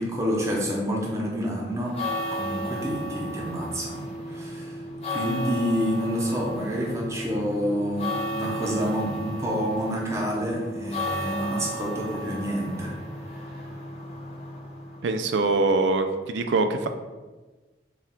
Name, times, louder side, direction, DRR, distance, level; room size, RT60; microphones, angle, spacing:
voice 1, 0.0-2.0 2.3-4.8 5.1-13.0 13.3-13.6, equal, 15° right, -2 dB, 0.7 m, -28 dB
sound 1, 1.7-15.3, equal, 35° left, 0.8 m, -34 dB
voice 2, 15.0-16.9, right 3 dB, 85° right, 8 dB, 0.4 m, -23 dB
4.4 x 2.4 x 3.6 m, 1.2 s
head